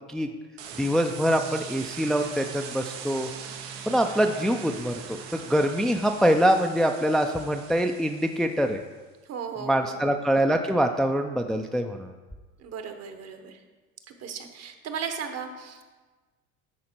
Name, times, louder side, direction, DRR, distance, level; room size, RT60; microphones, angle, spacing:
sound 1, 0.6-8.8, right 7 dB, 85° right, 0.9 m, -41 dB
voice 1, 0.8-3.3 3.9-8.8 9.6-12.1, equal, ahead, 5 dB, 0.4 m, -24 dB
voice 2, 9.3-10.1 12.6-13.6 14.2-15.9, right 6 dB, 50° right, 7 dB, 1.1 m, -36 dB
10.5 x 4.3 x 4.4 m, 1.3 s
supercardioid pair, 85°, 33 cm